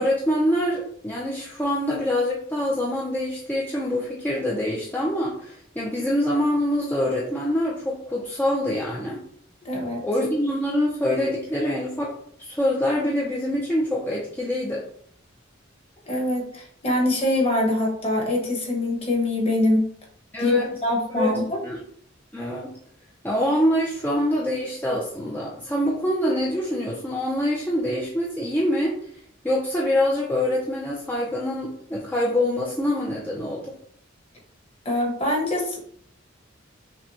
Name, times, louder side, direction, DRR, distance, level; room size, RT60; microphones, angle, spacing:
voice 1, 0.0-9.2 10.0-12.1 12.4-14.9 20.3-20.7 21.2-21.3 21.6-21.8 22.3-22.7 23.2-28.9 29.4-33.7, left 1 dB, 10° left, -4 dB, 0.5 m, -25 dB
voice 2, 9.6-10.0 16.1-19.9 20.4-21.6 34.8-35.9, left 1 dB, 30° left, -1 dB, 1.1 m, -24 dB
5.9 x 2.2 x 2.8 m, 0.62 s
head